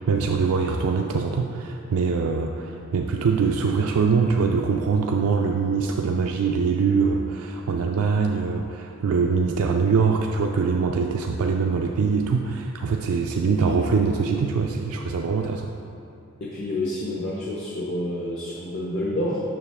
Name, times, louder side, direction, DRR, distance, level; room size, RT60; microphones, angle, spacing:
voice 1, 0.0-15.7, right 5 dB, 80° right, 2 dB, 0.4 m, -23 dB
voice 2, 13.5-13.8 16.4-19.4, left 1 dB, 55° left, -5 dB, 0.8 m, -29 dB
6.9 x 6.1 x 3.4 m, 2.8 s
head